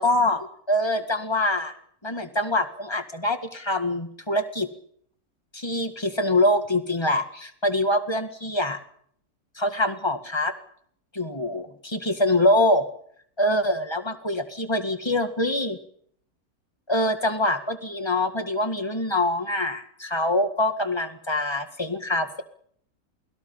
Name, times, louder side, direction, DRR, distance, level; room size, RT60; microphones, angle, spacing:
voice 1, 0.0-1.7 2.0-4.7 5.5-8.8 9.6-10.5 11.1-12.9 13.4-15.8 16.9-22.4, left 1 dB, 15° left, 7 dB, 1.9 m, -24 dB
28.5 x 20.5 x 5.6 m, 0.65 s
omnidirectional pair, 1.6 m